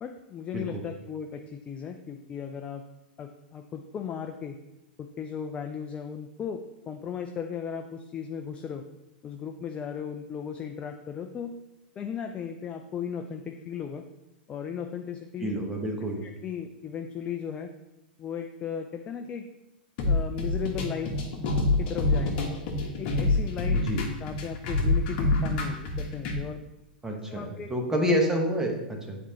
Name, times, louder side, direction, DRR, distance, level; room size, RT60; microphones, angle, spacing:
voice 1, 0.0-2.8 3.2-4.6 5.0-8.8 9.2-11.6 12.0-14.0 14.5-15.5 16.2-17.7 18.2-19.5 20.0-21.1 21.8-22.5 23.0-23.9 24.2-26.6 27.3-27.7, left 7 dB, 25° left, 4 dB, 0.4 m, -36 dB
voice 2, 15.4-16.2 23.7-24.0 27.0-29.2, equal, 10° right, 0 dB, 1.1 m, -28 dB
sound 1, 20.0-26.4, left 2 dB, 50° left, 1.2 m, -26 dB
8.0 x 4.3 x 2.9 m, 0.92 s
hypercardioid pair, 105°, 5 cm